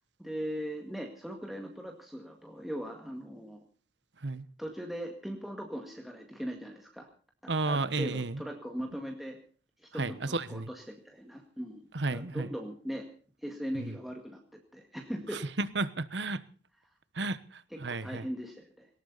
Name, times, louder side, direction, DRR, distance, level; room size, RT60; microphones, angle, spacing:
voice 1, 0.2-3.6 4.6-7.1 7.4-9.4 9.8-11.8 12.1-13.1 13.4-14.4 14.7-15.4 17.7-18.9, equal, ahead, 1 dB, 2.0 m, -39 dB
voice 2, 7.5-8.4 9.9-10.7 11.9-12.5 13.7-14.0 15.3-16.4 17.1-18.3, right 3 dB, 70° right, 15 dB, 1.2 m, -33 dB
18.5 x 18.5 x 4.1 m, 0.40 s
head